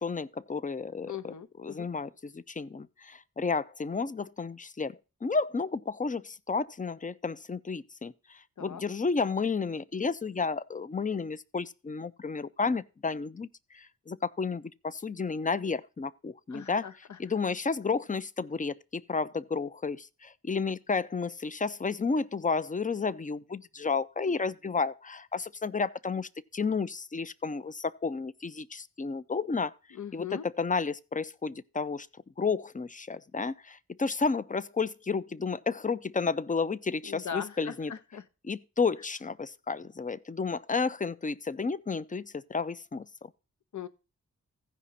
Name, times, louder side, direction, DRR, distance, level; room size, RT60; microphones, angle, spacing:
voice 1, 0.0-1.3 1.6-16.9 17.2-29.7 30.1-32.1 32.4-37.9 38.4-43.3, left 4 dB, 25° left, 0.6 m, -32 dB
voice 2, 1.1-1.9 8.6-8.8 16.5-17.2 29.9-30.4 37.1-38.2 43.7-43.9, left 8 dB, 65° left, 0.9 m, -40 dB
15.0 x 5.1 x 4.2 m
cardioid pair, 40°, 32 cm